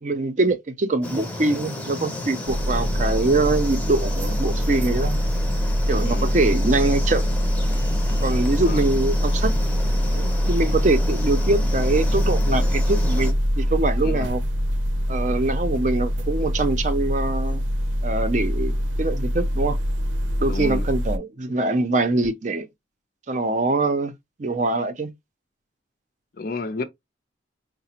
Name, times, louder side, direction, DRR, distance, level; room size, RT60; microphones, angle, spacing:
voice 1, 0.0-5.2 5.9-7.2 8.2-9.5 10.1-14.4 15.1-17.6 18.0-19.8 20.4-22.7 23.3-25.1, right 2 dB, 40° right, 0.5 m, -23 dB
sound 1, 1.0-13.3, left 1 dB, 10° left, 0.6 m, -33 dB
sound 2, 2.5-21.2, equal, 90° right, 0.6 m, -23 dB
voice 2, 6.0-6.4 8.6-8.9 14.0-14.3 20.5-20.9 26.4-26.8, left 3 dB, 50° left, 0.5 m, -31 dB
4.8 x 2.0 x 2.8 m
head